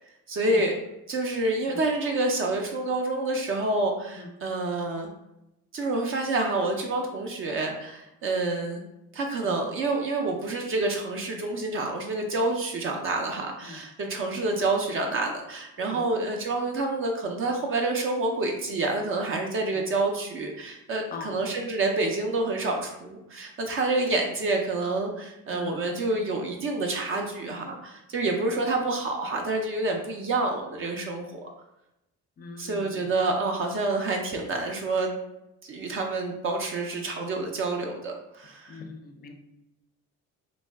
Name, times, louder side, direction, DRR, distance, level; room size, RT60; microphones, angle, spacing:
voice 1, 0.3-0.8 1.1-5.1 5.7-8.8 9.1-31.5 32.6-35.1 35.7-38.8, right 2 dB, 45° right, 2 dB, 0.4 m, -28 dB
voice 2, 25.5-25.8 32.4-33.1 38.7-39.3, left 4 dB, 30° left, 5 dB, 0.4 m, -41 dB
3.1 x 2.7 x 3.3 m, 0.89 s
cardioid pair, 155°, 31 cm